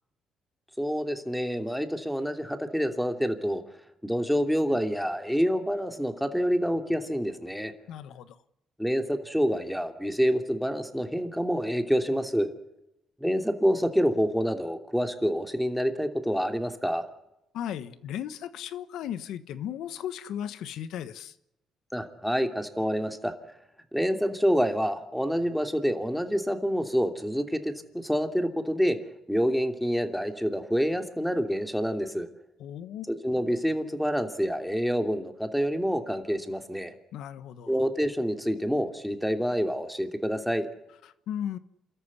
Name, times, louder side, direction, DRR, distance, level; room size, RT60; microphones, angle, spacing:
voice 1, 0.8-3.6 4.0-7.7 8.8-12.5 13.2-17.1 21.9-23.3 23.9-29.0 29.3-32.3 33.1-36.9 37.7-40.7, equal, ahead, 3.0 m, -27 dB
voice 2, 7.9-8.4 17.5-21.3 32.6-33.1 37.1-37.8 41.0-41.6, left 10 dB, 85° left, 1.3 m, -36 dB
28.0 x 14.0 x 9.7 m
cardioid pair, 90°, 0 cm